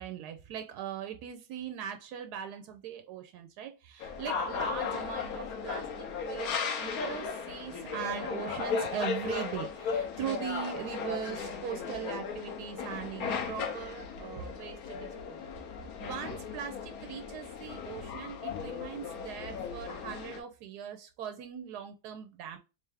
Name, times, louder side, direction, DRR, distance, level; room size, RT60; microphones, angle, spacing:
voice 1, 0.0-15.5 16.0-22.6, right 9 dB, 90° right, 1.1 m, -40 dB
sound 1, 4.0-20.4, left 5 dB, 70° left, 1.2 m, -36 dB
3.3 x 3.3 x 3.3 m
omnidirectional pair, 1.7 m